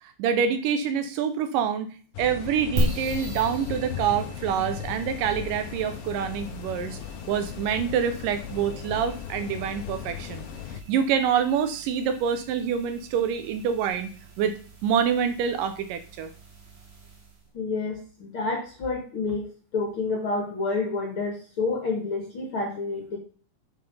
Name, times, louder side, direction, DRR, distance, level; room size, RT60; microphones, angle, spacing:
voice 1, 0.0-7.0 7.3-10.5 10.7-14.6 14.8-16.3, right 7 dB, 75° right, 9 dB, 2.2 m, -26 dB
sound 1, 2.1-10.8, left 9 dB, 85° left, 2.5 m, -37 dB
sound 2, 2.8-17.5, right 1 dB, 55° right, 3.7 m, -37 dB
voice 2, 17.5-19.4 19.7-23.2, left 3 dB, 50° left, 1 dB, 1.8 m, -29 dB
7.6 x 4.9 x 5.4 m, 0.40 s
omnidirectional pair, 4.1 m